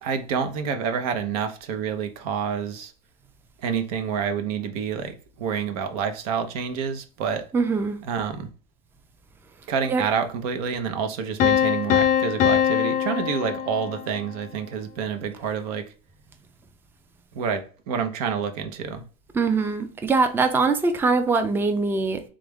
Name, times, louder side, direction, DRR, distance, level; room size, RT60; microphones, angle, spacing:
voice 1, 0.0-2.9 3.6-7.5 8.0-8.5 9.7-15.9 17.3-19.0, right 6 dB, 80° right, 0.8 m, -28 dB
voice 2, 7.5-8.0 9.9-10.0 19.3-22.2, right 4 dB, 10° right, 0.4 m, -22 dB
Piano, 11.4-14.3, left 9 dB, 45° left, 0.5 m, -22 dB
3.4 x 2.5 x 3.4 m
supercardioid pair, 125°, 19 cm